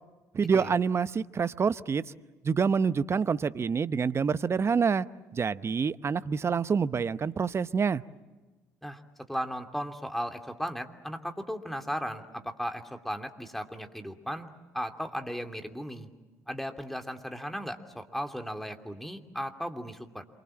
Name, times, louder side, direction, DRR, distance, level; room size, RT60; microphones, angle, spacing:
voice 1, 0.3-2.0 2.4-5.1 5.3-8.0, right 6 dB, 35° right, 16 dB, 0.9 m, -27 dB
voice 2, 9.3-14.5 14.7-16.1 16.5-20.2, equal, 5° left, 6 dB, 2.8 m, -36 dB
27.5 x 24.5 x 7.5 m, 1.2 s
hypercardioid pair, 55°, 8 cm